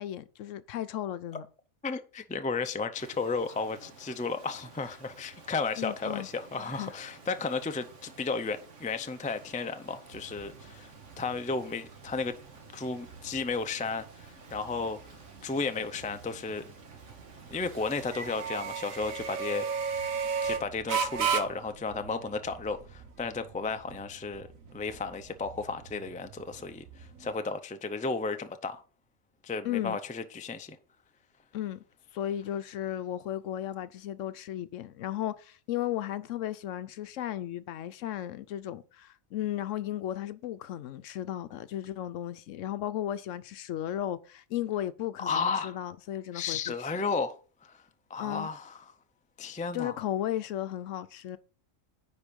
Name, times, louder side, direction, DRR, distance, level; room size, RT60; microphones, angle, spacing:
voice 1, 0.0-1.5 5.8-6.3 6.6-6.9 29.6-30.0 31.5-31.8 32.1-46.7 48.2-48.5 49.7-51.4, left 12 dB, 75° left, 0.9 m, -35 dB
voice 2, 1.8-10.9 11.2-12.4 12.7-15.0 15.4-16.6 17.5-19.6 20.4-28.8 29.4-30.8 45.2-45.8 46.3-47.4 47.6-47.8 48.1-48.7 49.4-49.9, left 4 dB, 10° left, 0.3 m, -33 dB
Rain, 2.9-18.8, right 4 dB, 60° right, 1.9 m, -53 dB
sound 1, 10.1-27.3, right 6 dB, 80° right, 1.4 m, -37 dB
9.9 x 4.4 x 5.1 m
omnidirectional pair, 1.4 m